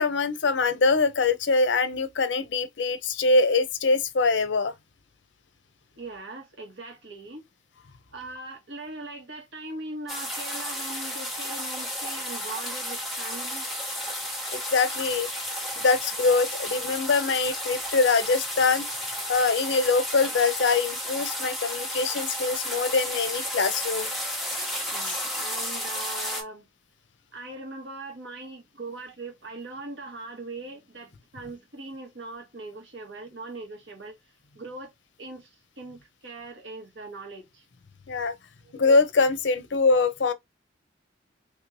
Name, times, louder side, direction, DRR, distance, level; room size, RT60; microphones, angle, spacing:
voice 1, 0.0-4.7 14.5-15.3 15.8-18.9 19.3-24.1 25.0-25.2 38.1-38.3 38.7-40.3, left 4 dB, 70° left, 0.6 m, -23 dB
voice 2, 6.0-7.4 8.1-13.7 24.9-26.6 27.3-34.2 34.5-34.9 35.2-35.5 35.8-37.6 38.6-38.7, right 2 dB, 80° right, 1.4 m, -40 dB
sound 1, 10.1-26.4, equal, ahead, 1.1 m, -32 dB
3.3 x 3.1 x 2.5 m
head